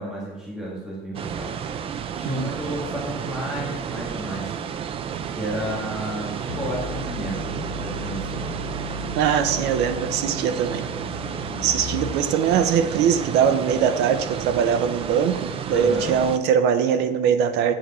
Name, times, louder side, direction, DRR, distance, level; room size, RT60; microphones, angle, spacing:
voice 1, 0.0-1.5 2.1-4.5 5.3-7.5 7.8-8.4 15.7-16.1, equal, 5° right, -5 dB, 1.6 m, -32 dB
sound 1, 1.1-16.4, right 8 dB, 30° right, 0.4 m, -32 dB
sound 2, 6.5-12.5, left 3 dB, 75° left, 0.7 m, -36 dB
voice 2, 9.2-10.9 11.6-17.7, right 8 dB, 75° right, 10 dB, 0.8 m, -22 dB
7.7 x 7.7 x 4.2 m, 1.1 s
cardioid pair, 170°, 18 cm